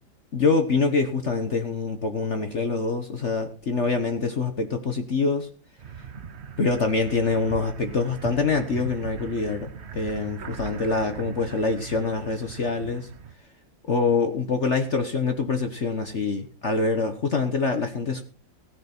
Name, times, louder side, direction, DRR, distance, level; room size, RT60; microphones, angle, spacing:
voice 1, 0.3-5.5 6.6-13.1 13.9-18.2, left 4 dB, 45° left, 7 dB, 1.2 m, -25 dB
sound 1, 5.8-13.3, right 7 dB, 45° right, 0.9 m, -39 dB
15.5 x 10.0 x 4.4 m, 0.38 s
omnidirectional pair, 2.1 m